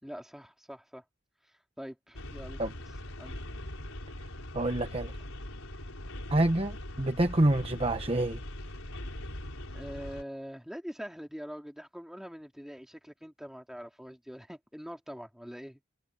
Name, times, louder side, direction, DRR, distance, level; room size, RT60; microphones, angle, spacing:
voice 1, 0.0-1.0 1.8-2.6 3.2-3.4 9.7-15.8, equal, ahead, 3.2 m, -43 dB
sound 1, 2.1-10.2, left 1 dB, 90° left, 4.9 m, -41 dB
voice 2, 4.5-5.1 6.3-8.4, right 1 dB, 30° right, 1.1 m, -27 dB
head